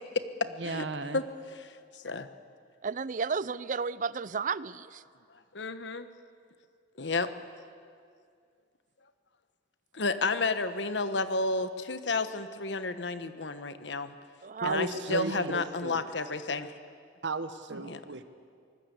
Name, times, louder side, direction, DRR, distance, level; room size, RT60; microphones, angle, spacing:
voice 1, 0.6-1.2 14.6-16.0 17.2-18.2, right 2 dB, 75° right, 10 dB, 1.3 m, -34 dB
voice 2, 2.8-5.0 14.4-14.8, right 5 dB, 45° right, 18 dB, 0.5 m, -33 dB
voice 3, 5.5-6.1 7.0-7.3 9.9-14.1 14.6-16.7 17.9-18.0, left 3 dB, 75° left, 11 dB, 1.3 m, -31 dB
24.5 x 20.0 x 8.3 m, 2.2 s
head